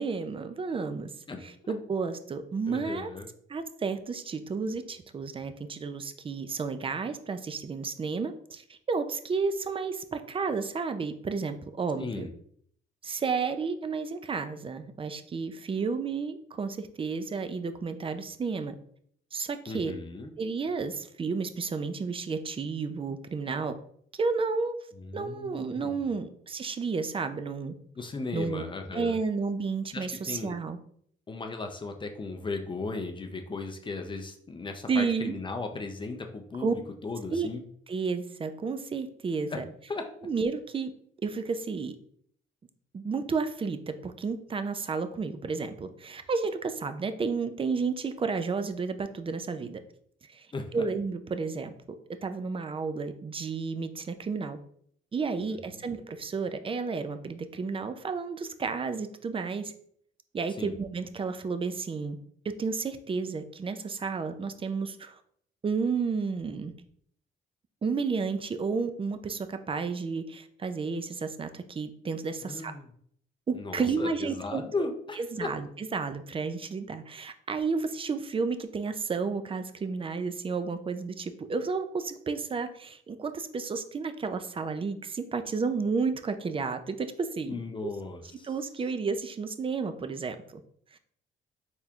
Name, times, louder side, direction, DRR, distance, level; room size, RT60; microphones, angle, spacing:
voice 1, 0.0-1.1 1.4-3.1 3.5-12.3 13.0-18.8 19.3-19.9 20.4-23.7 24.1-24.8 25.1-27.7 28.3-28.6 28.9-30.8 34.9-35.4 36.6-36.7 37.3-37.5 37.9-39.7 40.2-40.9 41.2-42.0 42.9-49.8 50.2-50.5 50.7-51.7 52.2-54.6 55.1-59.7 60.3-62.2 62.4-65.2 65.6-66.7 67.8-72.7 73.5-74.9 75.2-87.6 88.4-90.6 90.9-91.0, right 4 dB, 25° right, 9 dB, 0.4 m, -32 dB
voice 2, 1.3-1.7 2.7-3.3 12.0-12.3 19.7-20.3 24.9-26.1 28.0-29.2 29.9-30.6 31.3-37.6 39.5-39.6 39.9-40.1 50.5-50.6 55.5-55.8 60.6-60.8 72.4-72.9 73.5-75.5 87.5-88.5, left 3 dB, 25° left, 4 dB, 0.5 m, -36 dB
4.2 x 3.5 x 2.4 m, 0.64 s
cardioid pair, 90°, 20 cm